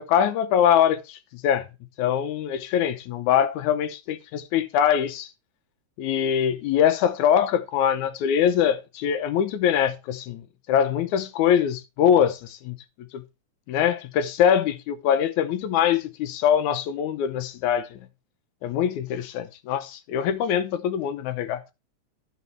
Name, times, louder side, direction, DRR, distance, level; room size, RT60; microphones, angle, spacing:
voice 1, 0.0-1.7 2.0-5.3 6.0-10.4 10.7-12.8 13.1-13.2 13.7-18.0 18.6-21.7, left 9 dB, 85° left, 2.3 m, -23 dB
12.5 x 4.3 x 4.3 m
omnidirectional pair, 3.3 m